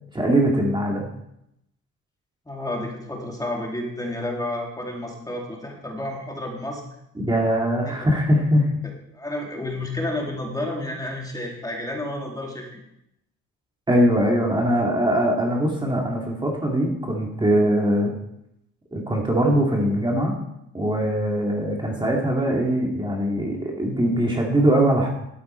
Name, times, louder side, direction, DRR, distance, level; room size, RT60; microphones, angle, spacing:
voice 1, 0.1-1.1 7.2-8.7 13.9-18.1 18.9-20.4 20.7-25.1, right 1 dB, 15° right, -1 dB, 2.2 m, -21 dB
voice 2, 2.5-6.8 7.8-7.9 9.1-12.7, left 1 dB, 10° left, 0 dB, 2.6 m, -30 dB
12.0 x 8.5 x 4.4 m, 0.80 s
cardioid pair, 90°, 30 cm